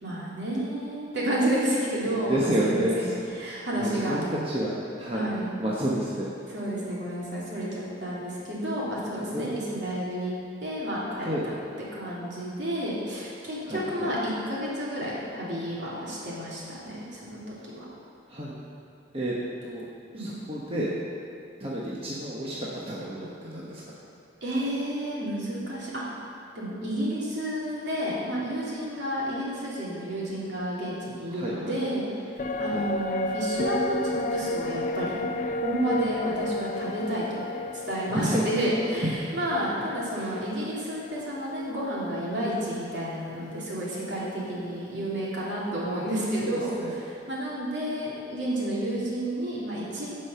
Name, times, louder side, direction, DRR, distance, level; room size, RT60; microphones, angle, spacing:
voice 1, 0.0-3.1 3.4-4.2 5.1-5.5 6.5-10.3 10.6-11.5 11.9-17.8 20.1-20.3 24.4-26.0 26.5-35.2 35.6-37.4 37.8-50.1, right 1 dB, 65° right, -7 dB, 3.1 m, -31 dB
voice 2, 2.1-3.1 3.5-5.3 5.6-6.3 9.3-9.5 11.2-11.5 13.6-14.1 18.3-18.5 19.1-19.3 19.6-19.9 20.2-21.0 21.6-23.8 31.3-31.7 32.6-32.8 38.1-38.4 39.0-39.3 40.1-40.3 46.4-46.9, right 1 dB, 30° right, -6 dB, 1.2 m, -30 dB
sound 1, 32.4-41.9 42.2-42.3, left 2 dB, 40° left, 0.4 m, -32 dB
16.0 x 5.5 x 5.6 m, 2.4 s
head